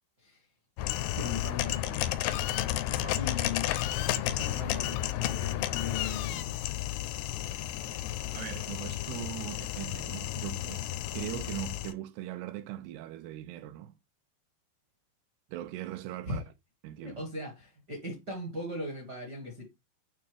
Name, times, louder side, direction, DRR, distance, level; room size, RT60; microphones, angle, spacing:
sound 1, 0.8-11.9, left 13 dB, 85° left, 2.5 m, -32 dB
voice 1, 1.2-2.1 3.1-6.5 16.2-16.4 17.0-19.6, left 2 dB, 60° right, 1.0 m, -39 dB
voice 2, 2.8-3.3 7.5-7.6 8.3-10.9 11.1-13.9 15.5-16.4 16.8-17.3, right 13 dB, 85° right, 2.4 m, -40 dB
8.7 x 3.2 x 3.4 m
omnidirectional pair, 4.9 m